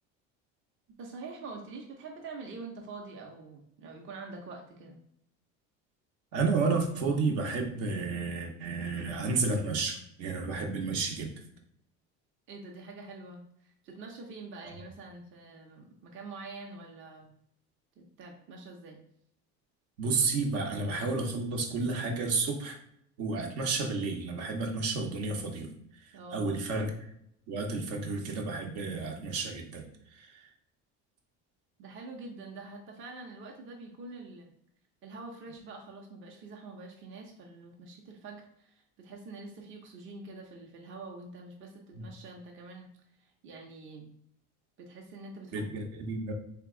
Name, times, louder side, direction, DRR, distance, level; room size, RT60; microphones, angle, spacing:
voice 1, 1.0-5.0 12.5-17.3 18.0-19.0 26.1-26.6 31.8-34.5 35.0-42.9 43.4-44.1 44.8-45.7, right 3 dB, 40° right, 1 dB, 0.7 m, -45 dB
voice 2, 6.3-11.4 20.0-22.8 23.2-25.7 26.3-26.9 27.5-29.9 30.1-30.4 41.9-42.0 45.5-46.3, right 4 dB, 70° right, 2 dB, 0.9 m, -31 dB
3.4 x 2.9 x 3.6 m, 0.71 s
cardioid pair, 130°, 30 cm